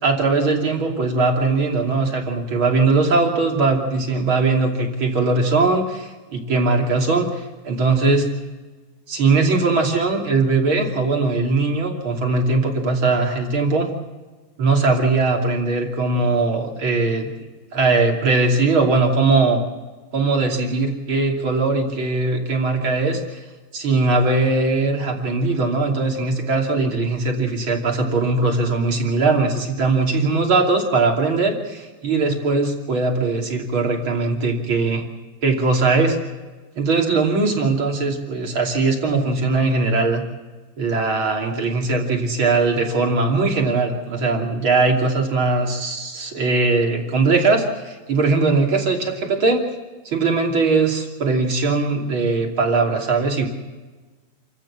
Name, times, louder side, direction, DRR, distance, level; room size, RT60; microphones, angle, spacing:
voice 1, 0.0-8.3 9.1-13.9 14.6-17.3 17.7-19.6 20.1-23.4 23.7-35.0 35.4-36.2 36.8-40.2 40.8-49.6 50.0-53.5, right 3 dB, 35° right, 2 dB, 3.2 m, -20 dB
28.0 x 15.0 x 7.2 m, 1.3 s
omnidirectional pair, 4.3 m